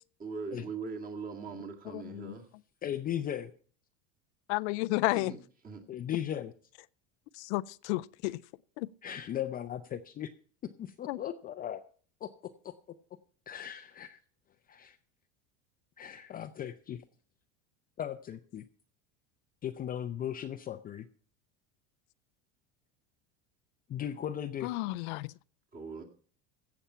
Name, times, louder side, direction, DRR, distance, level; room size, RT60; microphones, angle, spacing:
voice 1, 0.2-2.5 5.1-5.4 5.6-5.8 25.7-26.0, right 5 dB, 25° right, 2.2 m, -40 dB
voice 2, 1.9-2.4 4.5-5.3 7.3-8.4 11.1-11.2 24.6-25.3, left 21 dB, 85° left, 0.5 m, -32 dB
voice 3, 2.8-3.5 5.9-6.5 9.0-10.3 10.6-11.8 12.2-12.7 13.5-14.2 14.7-15.0 16.0-17.0 18.0-18.6 19.6-21.1 23.9-24.7, left 10 dB, 25° left, 0.5 m, -37 dB
15.5 x 7.1 x 5.7 m
supercardioid pair, 140°, 34 cm